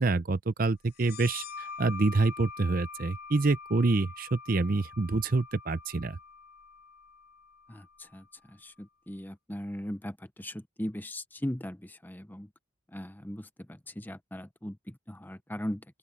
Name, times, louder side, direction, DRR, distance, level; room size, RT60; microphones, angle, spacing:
voice 1, 0.0-6.2, right 3 dB, 45° right, 0.6 m, -27 dB
sound 1, 0.9-8.3, left 5 dB, 50° left, 1.6 m, -45 dB
voice 2, 7.7-12.5 12.9-15.8, left 1 dB, 10° left, 0.8 m, -39 dB
open air
head